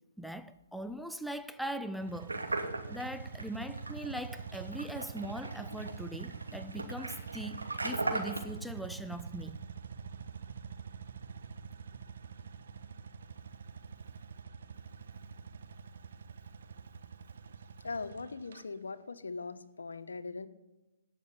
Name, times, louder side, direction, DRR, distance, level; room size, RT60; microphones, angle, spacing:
voice 1, 0.2-2.4 2.9-9.6, right 1 dB, ahead, 0.5 m, -40 dB
sound 1, 1.9-18.6, right 5 dB, 65° right, 1.0 m, -45 dB
sound 2, 2.3-8.4, right 2 dB, 90° right, 2.6 m, -38 dB
voice 2, 17.8-20.5, left 4 dB, 80° left, 1.2 m, -40 dB
18.0 x 6.6 x 9.7 m
figure-of-eight pair, 135°, 0 cm